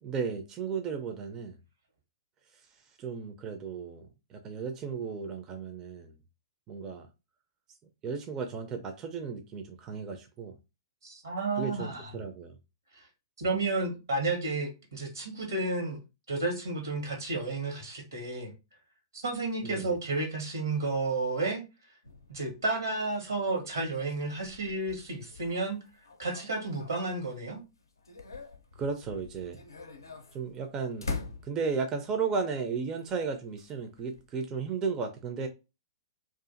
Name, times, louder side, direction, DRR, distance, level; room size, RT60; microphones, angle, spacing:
voice 1, 0.0-1.6 2.6-2.7 3.0-6.1 6.7-7.1 8.0-10.6 11.6-12.6 19.6-20.0 28.8-29.6 30.3-31.1 31.4-35.5, right 5 dB, 25° right, 0.4 m, -34 dB
voice 2, 11.0-12.1 13.4-16.0 16.3-18.5 19.1-21.6 22.3-25.8 26.2-27.6, right 3 dB, 80° right, 1.1 m, -32 dB
sound 1, 22.0-27.4 27.8-32.0 33.0-34.4, left 4 dB, 90° left, 0.5 m, -44 dB
2.4 x 2.4 x 2.4 m
hypercardioid pair, 115°, 2 cm